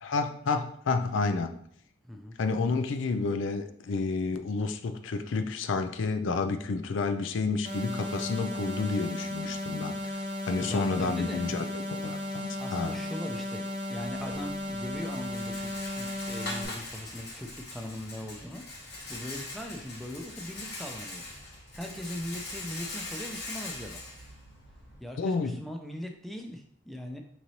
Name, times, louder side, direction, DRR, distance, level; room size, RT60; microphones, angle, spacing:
voice 1, 0.0-1.6 2.4-13.0 25.2-25.6, left 4 dB, 85° left, 8 dB, 0.4 m, -30 dB
voice 2, 2.0-2.4 10.6-11.5 12.6-24.0 25.0-27.2, left 1 dB, ahead, 2 dB, 0.4 m, -40 dB
sound 1, 7.6-16.6, left 1 dB, 30° right, 0.9 m, -35 dB
Rattle, 13.9-25.0, left 2 dB, 55° left, 1.0 m, -42 dB
5.0 x 3.1 x 2.7 m, 0.65 s
head